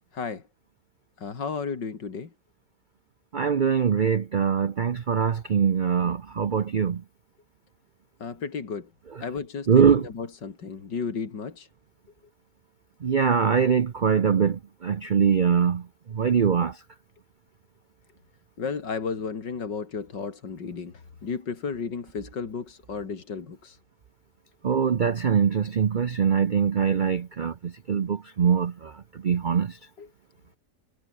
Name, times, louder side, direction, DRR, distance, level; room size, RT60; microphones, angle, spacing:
voice 1, 0.1-0.4 1.2-2.3 8.2-8.9 9.2-11.7 18.6-23.8 30.0-30.1, left 5 dB, 80° left, 3.3 m, -33 dB
voice 2, 3.3-7.0 9.7-10.0 13.0-15.8 16.1-16.8 24.6-28.9 29.2-29.8, right 7 dB, 85° right, 0.4 m, -23 dB
omnidirectional pair, 1.9 m